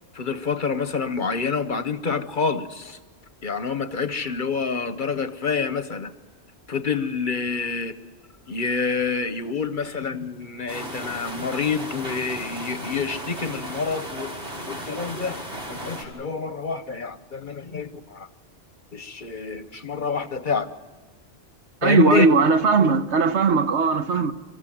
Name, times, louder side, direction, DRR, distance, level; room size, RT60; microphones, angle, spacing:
voice 1, 0.1-3.0 3.4-6.1 6.7-7.9 8.5-14.3 14.6-15.4 15.7-18.3 18.9-20.7 21.8-22.3, left 5 dB, 45° left, 0.9 m, -27 dB
sound 1, 10.7-16.0, equal, 45° right, 4.9 m, -35 dB
voice 2, 21.8-24.3, right 4 dB, 70° right, 1.3 m, -19 dB
25.0 x 15.0 x 9.1 m
omnidirectional pair, 1.2 m